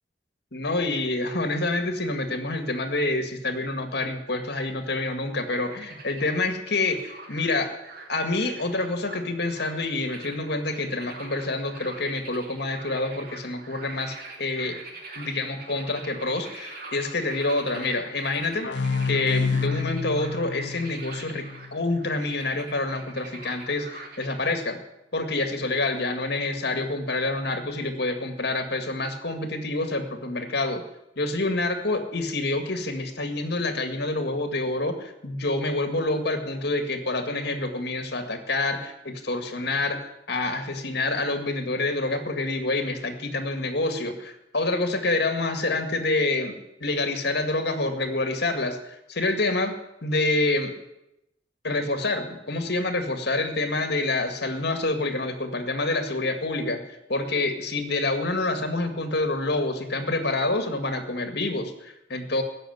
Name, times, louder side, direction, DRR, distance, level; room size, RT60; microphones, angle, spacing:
voice 1, 0.5-7.7 8.1-14.8 15.2-18.7 19.0-21.5 21.7-24.8 25.1-30.8 31.2-40.0 40.3-49.7 50.0-50.7 51.6-56.8 57.1-62.4, left 2 dB, 65° left, 6 dB, 1.9 m, -27 dB
sound 1, 5.4-24.3, right 3 dB, 60° right, 2.8 m, -44 dB
sound 2, 18.6-22.1, left 4 dB, 80° left, 0.7 m, -29 dB
15.5 x 6.7 x 9.4 m, 0.87 s
head